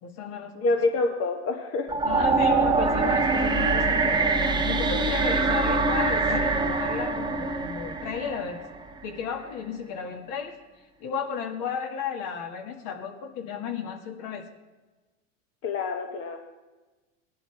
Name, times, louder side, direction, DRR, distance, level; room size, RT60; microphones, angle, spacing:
voice 1, 0.0-0.8 2.0-4.3 4.6-8.6 9.0-10.5 11.0-14.5, left 7 dB, 55° left, 3 dB, 2.2 m, -34 dB
voice 2, 0.5-1.9 15.6-16.4, left 3 dB, 35° left, 3 dB, 1.3 m, -26 dB
sound 1, 1.9-9.0, right 3 dB, 10° right, 1.0 m, -24 dB
18.5 x 11.0 x 3.5 m, 1.2 s
supercardioid pair, 110°, 37 cm